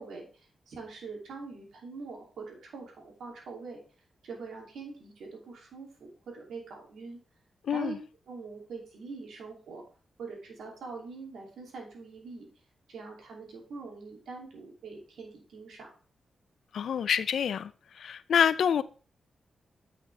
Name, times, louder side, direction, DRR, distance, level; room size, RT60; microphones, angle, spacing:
voice 1, 0.0-3.8 4.2-7.2 7.7-7.9 8.3-9.8 10.2-12.5 12.9-15.9, right 4 dB, 80° right, 2.6 m, -43 dB
voice 2, 7.7-8.0 16.7-17.7 18.0-18.8, left 8 dB, 80° left, 0.4 m, -26 dB
8.6 x 5.8 x 3.3 m
cardioid pair, 65°, 0 cm